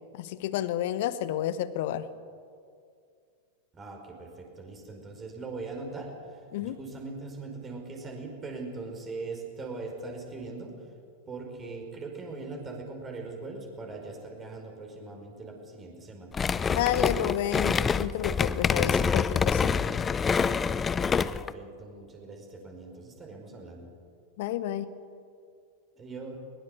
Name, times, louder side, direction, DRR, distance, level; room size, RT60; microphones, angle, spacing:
voice 1, 0.1-2.1 6.5-6.8 16.7-19.9 24.4-24.9, left 11 dB, 50° left, 15 dB, 1.1 m, -30 dB
voice 2, 3.7-10.9 11.3-16.3 21.0-23.9 26.0-26.4, right 3 dB, 20° right, 2 dB, 5.1 m, -41 dB
sound 1, 16.3-21.5, left 6 dB, 20° left, 0.5 m, -26 dB
22.0 x 21.5 x 6.8 m, 2.3 s
figure-of-eight pair, 90°, 0 cm